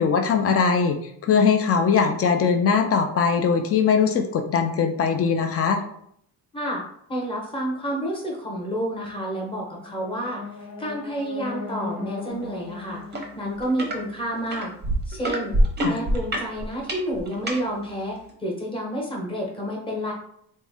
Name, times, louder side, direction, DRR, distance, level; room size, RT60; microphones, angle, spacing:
voice 1, 0.0-5.8 15.8-16.0, left 6 dB, 35° left, 5 dB, 0.4 m, -21 dB
voice 2, 7.1-10.4 10.8-13.0 13.4-14.7 15.1-15.6 15.8-20.1, equal, 15° left, -2 dB, 0.8 m, -29 dB
sound 1, 9.5-14.6, left 4 dB, 70° left, 0.9 m, -38 dB
sound 2, 13.1-13.3 13.6-14.0 14.5-17.6 18.3-18.4, right 1 dB, 25° right, 0.6 m, -24 dB
3.6 x 2.1 x 3.4 m, 0.69 s
cardioid pair, 145°, 41 cm